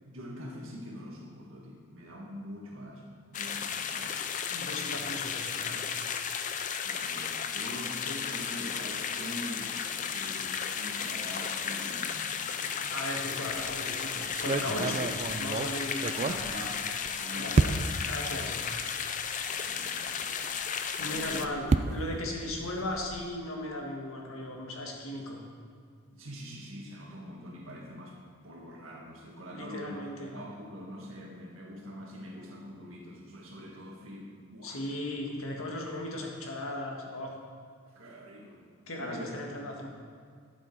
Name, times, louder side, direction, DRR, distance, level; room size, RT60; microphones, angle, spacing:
voice 1, 0.0-4.1 6.8-12.9 16.1-16.9 17.2-17.8 18.2-18.8 19.5-20.7 21.0-21.5 22.6-22.8 26.1-34.9 37.9-38.6 39.0-39.7, equal, 70° right, -2 dB, 1.9 m, -44 dB
sound 1, 3.3-21.5, left 7 dB, 35° left, 0.4 m, -34 dB
voice 2, 4.5-5.8 12.9-16.2 17.4-17.7 18.1-18.5 19.9-20.0 21.0-25.4 29.5-30.4 34.6-37.3 38.9-39.9, left 1 dB, 75° left, 0 dB, 1.6 m, -37 dB
sound 2, 13.5-13.8 14.3-17.1 17.5-18.1 18.8-18.9 19.3-19.4 21.0-23.3, right 3 dB, 30° right, 0.3 m, -30 dB
11.5 x 7.3 x 4.5 m, 2.1 s
head